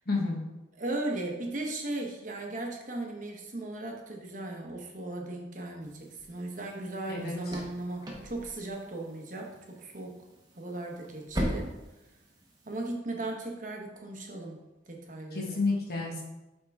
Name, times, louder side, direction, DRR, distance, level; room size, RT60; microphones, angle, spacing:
voice 1, 0.1-0.4 7.1-7.3 15.3-16.2, left 3 dB, 50° left, -2 dB, 1.4 m, -30 dB
voice 2, 0.7-10.1 10.6-11.7 12.7-14.6 14.9-15.6, right 2 dB, 40° right, 1 dB, 1.0 m, -37 dB
sound 1, 5.8-12.9, equal, 20° right, 1.0 m, -40 dB
8.5 x 3.7 x 3.5 m, 1.0 s
head